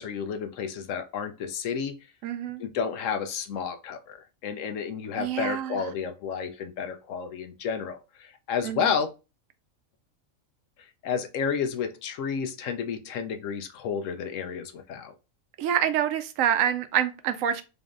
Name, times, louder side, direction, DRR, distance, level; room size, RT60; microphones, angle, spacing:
voice 1, 0.0-1.9 2.6-4.2 4.4-9.1 11.0-15.1, left 6 dB, 75° left, 1.0 m, -31 dB
voice 2, 2.2-2.6 5.2-5.8 8.6-8.9 15.6-17.6, right 9 dB, 75° right, 0.9 m, -26 dB
4.0 x 3.5 x 2.5 m
omnidirectional pair, 1.4 m